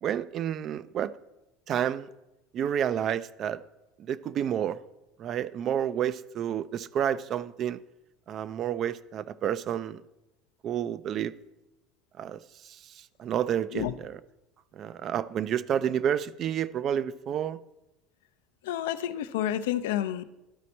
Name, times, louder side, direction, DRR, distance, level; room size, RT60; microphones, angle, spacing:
voice 1, 0.0-1.1 1.7-2.1 2.5-3.6 4.0-4.8 5.2-7.8 8.3-10.0 10.6-11.3 12.2-12.4 12.6-14.2 14.7-17.6, right 9 dB, 50° right, 0.3 m, -30 dB
voice 2, 18.6-20.2, left 11 dB, 85° left, 0.4 m, -29 dB
12.0 x 4.2 x 4.3 m
supercardioid pair, 90°, 0 cm